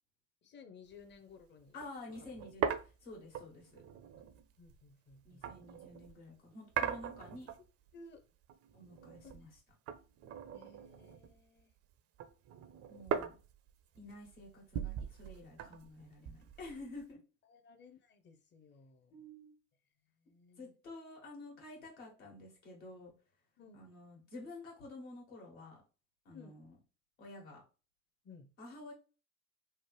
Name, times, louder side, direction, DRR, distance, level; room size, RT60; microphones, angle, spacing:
voice 1, 0.4-1.8 4.6-5.5 7.9-8.2 9.2-9.3 10.5-11.7 17.5-19.1 20.3-20.7 23.6-23.8 26.3-26.5 28.2-28.5, left 4 dB, 30° left, 0.5 m, -57 dB
sound 1, 0.9-1.1 1.4-1.5 1.8-6.2 6.7-7.9 8.2-9.6 9.9-11.6 11.9-17.1, right 8 dB, 40° right, 0.4 m, -41 dB
voice 2, 1.7-2.7 3.0-3.8 5.2-7.5 8.7-9.6 12.9-13.3 13.9-17.2 19.1-19.5 20.6-23.1 23.7-25.8 26.2-26.8 27.2-27.6 28.6-28.9, left 2 dB, 85° left, 1.4 m, -50 dB
3.2 x 2.0 x 3.0 m
hypercardioid pair, 75°, 40 cm